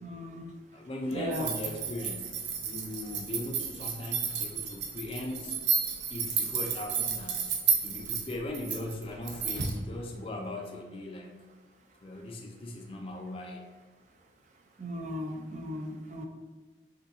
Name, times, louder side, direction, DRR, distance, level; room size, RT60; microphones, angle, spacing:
voice 1, 0.0-0.5 1.1-1.5 14.8-16.3, equal, 40° right, 2 dB, 0.4 m, -37 dB
voice 2, 0.7-5.6 6.1-7.5 7.8-11.4 12.0-13.7, left 1 dB, 30° left, 2 dB, 0.4 m, -39 dB
sound 1, 1.3-9.8, right 6 dB, 70° right, 0.7 m, -32 dB
5.5 x 3.7 x 2.5 m, 1.3 s
head